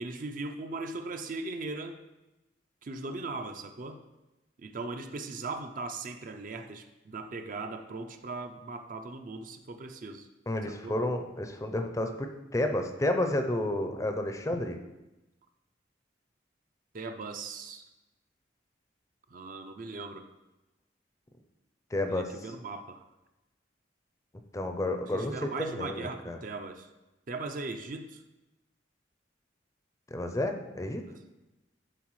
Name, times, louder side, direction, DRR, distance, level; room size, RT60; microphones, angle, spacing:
voice 1, 0.0-2.0 2.8-4.0 4.6-10.3 10.7-11.0 16.9-17.8 19.3-20.3 22.1-23.0 25.1-26.9 27.3-28.2 31.0-31.2, right 3 dB, 45° right, 7 dB, 0.4 m, -39 dB
voice 2, 10.5-12.3 12.5-14.8 21.9-22.3 24.5-26.4 30.1-31.0, left 1 dB, 15° left, 6 dB, 0.5 m, -31 dB
11.0 x 4.0 x 3.1 m, 1.0 s
head